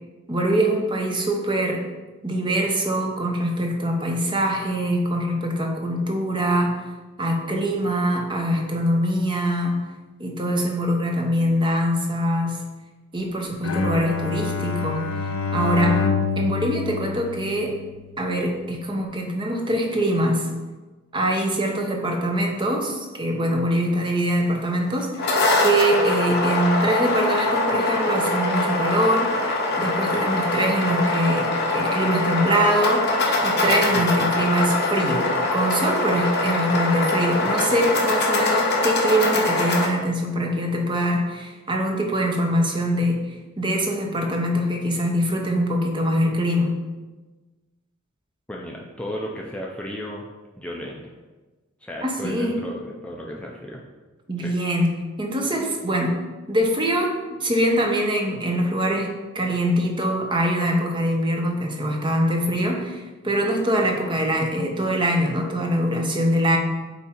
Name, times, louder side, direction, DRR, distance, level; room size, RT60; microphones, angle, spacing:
voice 1, 0.3-1.8 2.2-6.9 7.2-9.8 10.2-12.6 13.1-15.1 15.5-16.0 16.4-17.8 18.2-20.5 21.1-29.5 29.8-43.3 43.6-46.8 52.0-52.6 54.3-54.9 55.2-56.2 56.5-66.6, equal, 25° right, 1 dB, 0.8 m, -23 dB
Bowed string instrument, 13.6-18.0, left 5 dB, 70° left, 0.5 m, -26 dB
sound 1, 25.0-39.9, left 2 dB, 50° left, 1.1 m, -23 dB
voice 2, 48.5-50.2 50.6-51.0 51.8-53.8 54.4-54.5, equal, 5° left, -2 dB, 0.5 m, -34 dB
8.3 x 2.8 x 4.3 m, 1.2 s
head